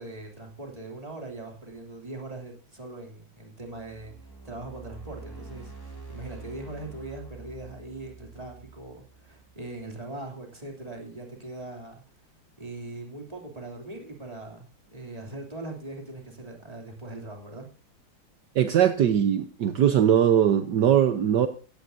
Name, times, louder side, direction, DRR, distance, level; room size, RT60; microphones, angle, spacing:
voice 1, 0.0-4.1 4.4-12.0 12.6-17.7, right 2 dB, 20° right, 1 dB, 3.0 m, -40 dB
sound 1, 3.6-9.8, right 3 dB, 10° left, 3.4 m, -46 dB
voice 2, 18.5-21.5, right 9 dB, 65° right, 9 dB, 1.5 m, -21 dB
16.0 x 14.0 x 2.7 m, 0.37 s
omnidirectional pair, 2.1 m